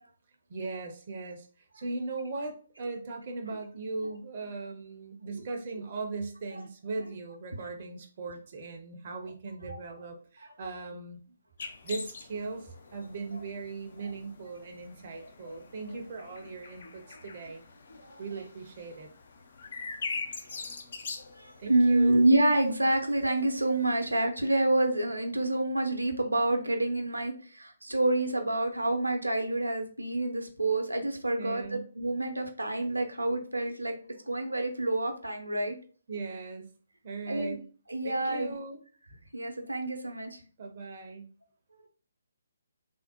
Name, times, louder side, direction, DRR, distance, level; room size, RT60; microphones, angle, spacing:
voice 1, 0.5-11.2 11.8-17.6 18.2-19.1 21.6-22.3 31.4-31.8 36.1-36.7 37.0-37.6 38.0-38.8 40.6-41.3, right 3 dB, 40° right, 3 dB, 0.5 m, -38 dB
sound 1, 11.6-24.3, left 4 dB, 50° left, 0.4 m, -44 dB
voice 2, 21.4-34.0 34.3-35.8 37.3-37.6 37.9-38.6 39.3-40.4, right 1 dB, 85° right, 4 dB, 0.6 m, -27 dB
3.4 x 2.0 x 2.7 m, 0.41 s
figure-of-eight pair, 140°, 0 cm